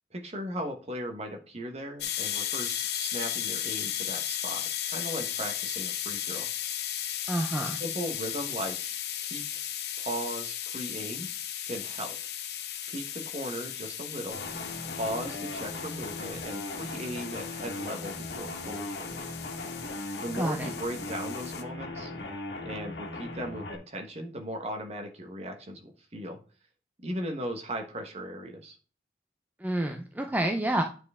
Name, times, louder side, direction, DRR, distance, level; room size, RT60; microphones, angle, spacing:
voice 1, 0.1-6.5 7.6-8.8 9.2-9.6 10.0-11.3 11.7-12.2 12.9-14.4 14.9-19.2 20.2-22.1 22.6-26.4 27.0-28.8, equal, 35° right, 4 dB, 1.3 m, -37 dB
sound 1, 2.0-21.6, left 11 dB, 65° left, 0.8 m, -36 dB
voice 2, 7.3-7.8 20.3-20.7 29.6-30.8, right 1 dB, 10° right, 3 dB, 0.6 m, -28 dB
sound 2, 14.3-23.8, left 2 dB, 85° left, 1.7 m, -38 dB
9.3 x 4.6 x 3.6 m, 0.37 s
head